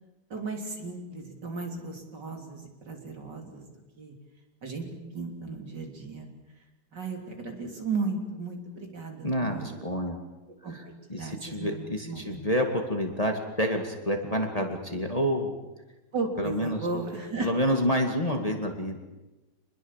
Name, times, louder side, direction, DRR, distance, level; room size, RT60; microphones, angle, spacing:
voice 1, 0.3-3.7 4.0-4.1 4.6-4.9 5.1-6.3 6.9-9.8 10.6-12.4 16.1-17.5, right 3 dB, 60° right, 3 dB, 4.0 m, -35 dB
voice 2, 9.2-10.2 11.1-15.5 16.4-16.8 17.4-19.0, equal, 20° left, 3 dB, 2.3 m, -28 dB
27.0 x 21.0 x 7.5 m, 1.1 s
omnidirectional pair, 2.1 m